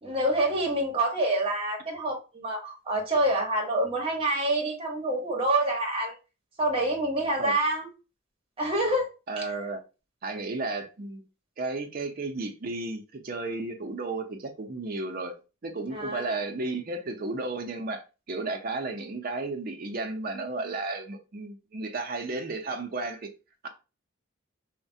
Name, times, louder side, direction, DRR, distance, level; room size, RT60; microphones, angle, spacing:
voice 1, 0.0-6.1 6.6-7.9 8.6-9.1 15.9-16.4, right 1 dB, 25° right, 0.9 m, -27 dB
voice 2, 9.3-9.8 10.2-11.2 11.6-15.4 15.6-18.0 18.3-23.3 23.6-23.7, right 3 dB, 45° right, 0.5 m, -33 dB
3.2 x 2.1 x 2.6 m
head